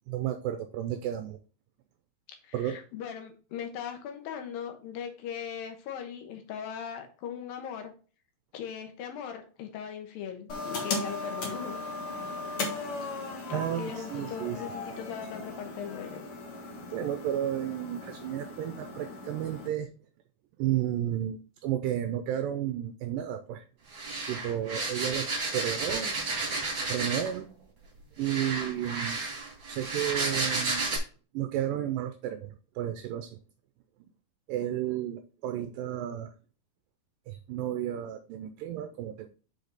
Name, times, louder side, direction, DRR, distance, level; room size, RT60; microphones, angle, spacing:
voice 1, 0.1-1.4 2.5-2.8 13.5-14.6 16.9-19.9 20.6-23.7 24.3-26.2 26.8-27.5 28.2-29.2 29.7-30.9 31.3-33.4 34.5-36.3 37.3-39.3, right 11 dB, 80° right, 8 dB, 2.2 m, -32 dB
voice 2, 2.4-7.9 8.5-11.9 13.3-16.2, left 8 dB, 80° left, 5 dB, 2.9 m, -39 dB
sound 1, 10.5-19.7, left 3 dB, 50° left, 1.8 m, -37 dB
sound 2, 23.9-27.4 28.2-31.0, right 3 dB, 35° right, 2.7 m, -32 dB
6.5 x 4.9 x 3.9 m, 0.38 s
omnidirectional pair, 4.1 m